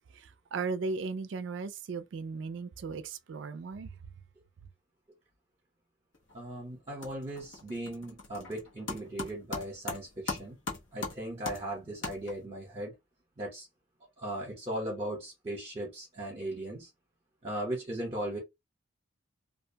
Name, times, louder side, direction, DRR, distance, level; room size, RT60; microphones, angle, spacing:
voice 1, 0.5-3.9, right 4 dB, 65° right, 0.4 m, -36 dB
sound 1, 6.1-6.5 6.8-12.7, left 3 dB, 65° left, 0.9 m, -40 dB
voice 2, 6.3-10.6 10.9-12.9 13.4-13.7 14.2-16.9 17.4-18.4, right 1 dB, 30° right, 0.9 m, -37 dB
2.4 x 2.2 x 2.7 m
head